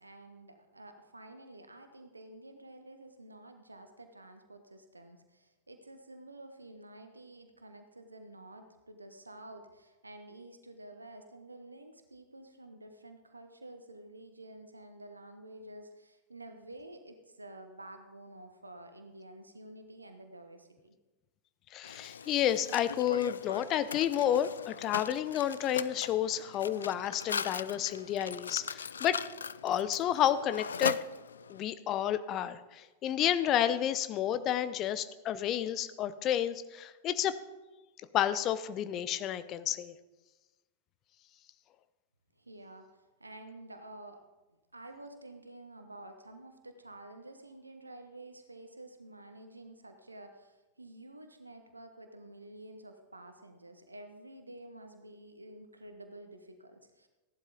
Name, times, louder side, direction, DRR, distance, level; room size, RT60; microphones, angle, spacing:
voice 1, 0.0-21.0 42.4-44.2 44.7-57.1, right 1 dB, 80° right, 7 dB, 1.0 m, -50 dB
voice 2, 21.7-29.2 29.6-31.0 31.5-37.4 38.1-39.9, left 10 dB, 35° left, 13 dB, 0.7 m, -30 dB
Mechanisms, 21.8-31.6, left 6 dB, 70° left, 0.3 m, -39 dB
15.0 x 11.5 x 3.9 m, 1.2 s
figure-of-eight pair, 90°, 0 cm